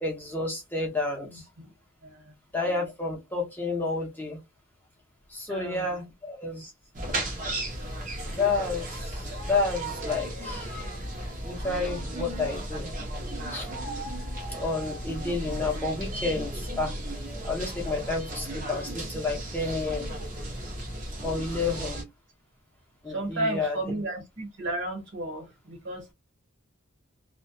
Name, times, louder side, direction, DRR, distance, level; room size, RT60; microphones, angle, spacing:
voice 1, 0.0-1.4 2.5-4.4 5.3-6.7 8.3-10.7 11.4-12.9 13.5-13.7 14.5-17.0 17.4-20.1 21.2-22.0 23.0-23.8, left 3 dB, 10° left, 0.6 m, -30 dB
voice 2, 1.2-1.7 2.0-2.3 5.5-5.9 21.4-21.9 23.1-26.1, right 1 dB, 55° right, 1.1 m, -34 dB
sound 1, 6.9-22.0, right 1 dB, 35° right, 0.7 m, -35 dB
2.2 x 2.1 x 2.6 m
head